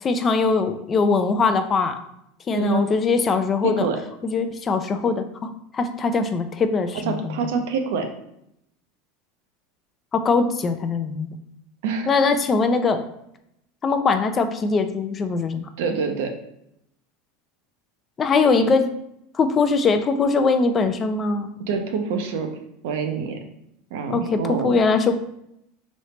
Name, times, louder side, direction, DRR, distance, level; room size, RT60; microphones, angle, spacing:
voice 1, 0.0-2.0 2.5-3.9 4.2-7.4 10.1-11.3 12.1-13.0 13.8-15.7 18.2-18.9 19.3-21.5 24.1-25.1, left 4 dB, 30° left, 8 dB, 0.4 m, -21 dB
voice 2, 2.5-2.8 3.6-4.0 7.1-8.1 11.8-12.1 15.8-16.3 18.6-18.7 21.7-22.5 22.8-23.4 23.9-24.7, right 5 dB, 70° right, 5 dB, 0.6 m, -25 dB
3.1 x 2.7 x 3.2 m, 0.78 s
hypercardioid pair, 90°, 0 cm